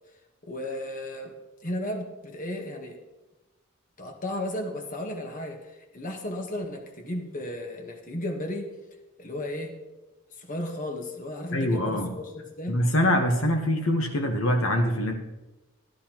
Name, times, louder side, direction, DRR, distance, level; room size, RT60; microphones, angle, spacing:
voice 1, 0.4-1.3 1.6-3.0 4.0-8.7 9.2-9.7 10.4-12.8, left 1 dB, 40° left, 3 dB, 1.2 m, -34 dB
voice 2, 11.5-12.1 12.7-15.1, left 1 dB, 75° left, 4 dB, 1.1 m, -24 dB
13.5 x 12.5 x 2.9 m, 1.1 s
head